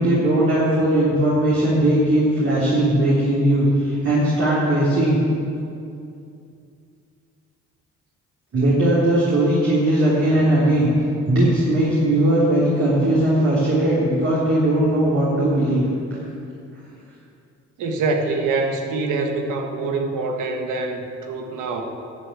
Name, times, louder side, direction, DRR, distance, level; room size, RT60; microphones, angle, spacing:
voice 1, 0.0-5.2 8.5-10.9 11.3-15.9, right 1 dB, 50° right, -8 dB, 3.4 m, -18 dB
voice 2, 17.8-21.8, right 3 dB, 90° right, 3 dB, 1.5 m, -25 dB
12.0 x 7.1 x 8.4 m, 2.6 s
cardioid pair, 90°, 30 cm